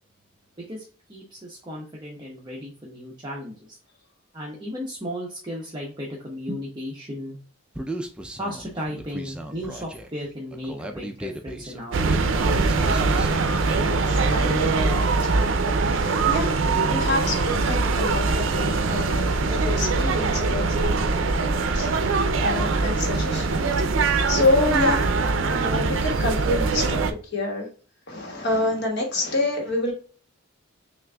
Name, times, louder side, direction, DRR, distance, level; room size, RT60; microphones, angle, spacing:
voice 1, 0.7-3.8 4.3-7.4 8.4-12.5, equal, 25° right, -3 dB, 0.7 m, -35 dB
Human voice, 7.7-13.7, right 1 dB, 5° right, 0.3 m, -36 dB
sound 1, 11.9-27.1, right 3 dB, 80° right, 0.5 m, -22 dB
voice 2, 13.7-15.5 15.8-21.9 22.4-23.7 24.0-25.1 25.5-27.7 28.1-29.9, left 2 dB, 60° left, 1 dB, 1.3 m, -28 dB
6.0 x 2.5 x 2.2 m, 0.41 s
head